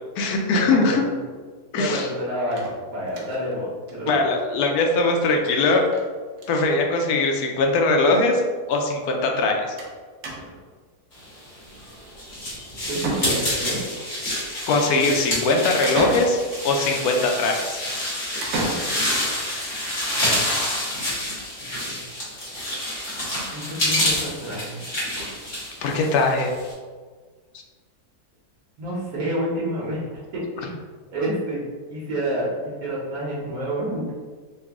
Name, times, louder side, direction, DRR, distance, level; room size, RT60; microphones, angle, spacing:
voice 1, 0.2-1.0 1.7-2.1 4.1-5.8 6.5-8.4 8.7-9.6 14.7-17.8 25.8-26.5, left 3 dB, 75° left, 2 dB, 1.1 m, -21 dB
voice 2, 0.7-1.0 1.8-4.2 12.9-13.8 21.6-22.0 23.5-24.8 28.8-30.9 31.1-31.6 31.9-34.1, right 1 dB, 70° right, -6 dB, 1.4 m, -29 dB
sound 1, 2.5-3.5 3.9-4.0 4.3-4.4 4.6-4.7 5.9-6.1 6.3-6.7 7.6-7.7 7.9-8.0 9.8-10.0 10.2-10.7 12.5-12.6 13.0-13.8 15.8-16.7 18.4-19.3, right 2 dB, 85° right, 1.3 m, -31 dB
sound 2, 11.6-26.7, left 1 dB, 55° left, 1.7 m, -28 dB
3.8 x 2.3 x 3.5 m, 1.5 s
omnidirectional pair, 1.6 m